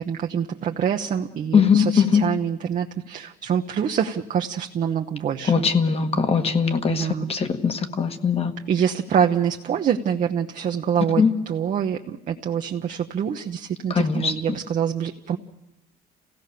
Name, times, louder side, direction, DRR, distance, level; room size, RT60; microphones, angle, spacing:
voice 1, 0.0-5.7 6.9-7.3 8.7-15.4, right 8 dB, 50° right, 3 dB, 1.0 m, -25 dB
voice 2, 1.5-2.2 5.5-8.5 11.2-11.3 13.9-14.6, left 6 dB, 35° left, 8 dB, 1.6 m, -21 dB
27.5 x 16.5 x 6.8 m, 0.87 s
cardioid pair, 110°, 17 cm